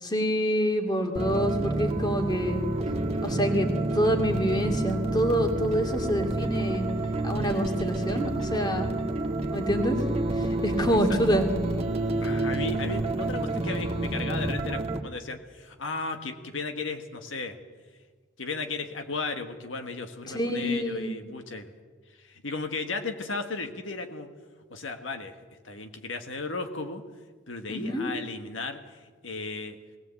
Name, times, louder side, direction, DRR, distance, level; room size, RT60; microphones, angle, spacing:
voice 1, 0.0-2.6 3.2-6.9 7.2-8.9 9.5-10.0 10.3-11.5 20.3-21.2 27.7-28.1, equal, 20° left, 3 dB, 2.5 m, -27 dB
sound 1, 1.1-15.0, right 2 dB, 35° right, 1.9 m, -29 dB
voice 2, 12.2-17.6 18.4-21.7 22.2-24.3 24.7-25.4 25.6-27.0 27.5-29.8, left 3 dB, 85° left, 6 dB, 1.6 m, -35 dB
20.0 x 18.5 x 8.4 m, 1.5 s
head